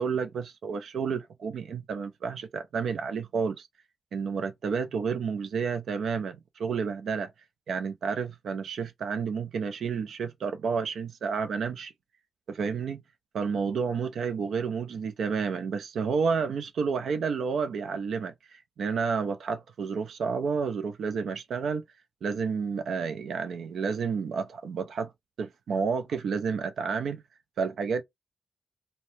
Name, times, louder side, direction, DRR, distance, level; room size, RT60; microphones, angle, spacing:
voice 1, 0.0-3.7 4.1-7.3 7.7-11.9 12.5-13.0 13.3-21.8 22.2-25.1 25.4-27.2 27.6-28.0, right 5 dB, 80° right, 0.3 m, -30 dB
2.6 x 2.0 x 3.1 m
cardioid pair, 50°, 0 cm